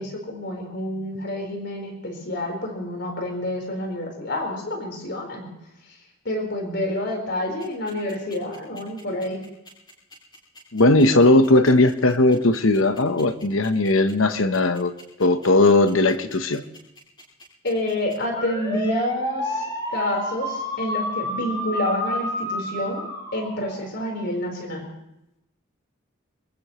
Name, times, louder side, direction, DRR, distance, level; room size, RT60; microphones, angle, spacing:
voice 1, 0.0-5.5 6.2-9.4 17.6-23.1 23.3-24.9, left 1 dB, 55° left, 2 dB, 4.4 m, -28 dB
sound 1, 7.6-24.1, left 1 dB, 20° left, 7.8 m, -30 dB
voice 2, 10.7-14.9 15.2-16.6, left 2 dB, 85° left, 9 dB, 1.1 m, -18 dB
27.5 x 15.5 x 3.2 m, 0.86 s
head